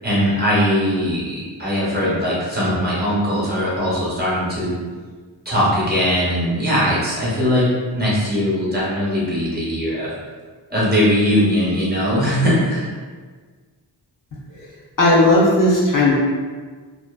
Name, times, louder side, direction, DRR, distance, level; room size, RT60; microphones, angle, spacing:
voice 1, 0.0-4.8 5.4-10.1 10.7-12.9, equal, 20° right, -8 dB, 0.7 m, -20 dB
voice 2, 15.0-16.1, left 1 dB, 45° left, -6 dB, 0.5 m, -15 dB
2.5 x 2.4 x 2.2 m, 1.5 s
wide cardioid pair, 130°, 45 cm